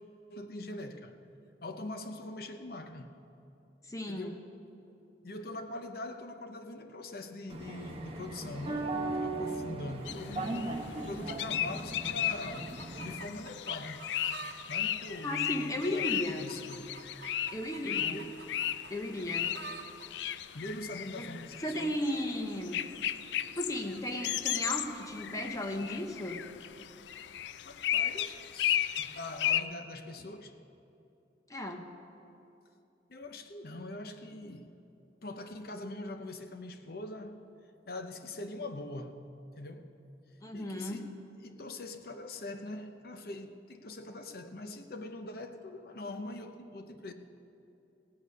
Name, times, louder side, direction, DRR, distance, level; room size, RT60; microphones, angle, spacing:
voice 1, 0.3-1.1 1.6-3.2 4.1-4.5 5.2-12.7 13.0-14.2 14.7-16.9 17.8-18.5 20.5-22.0 27.6-30.6 33.1-34.7 35.2-37.4 37.9-39.3 39.6-39.9 40.4-41.1 41.4-47.1, left 2 dB, 55° left, 0.7 m, -43 dB
voice 2, 3.8-4.3 15.2-16.5 17.5-18.2 18.9-19.6 21.2-21.3 21.6-22.8 23.5-26.4 31.5-31.9 40.4-41.0, left 1 dB, 20° left, 0.8 m, -35 dB
sound 1, 7.5-13.2, right 2 dB, 30° right, 1.0 m, -38 dB
sound 2, 10.1-29.6, left 11 dB, 80° left, 0.3 m, -35 dB
sound 3, 11.7-14.6 14.9-20.1 20.9-21.0, right 4 dB, 80° right, 0.9 m, -49 dB
17.0 x 8.4 x 5.4 m
head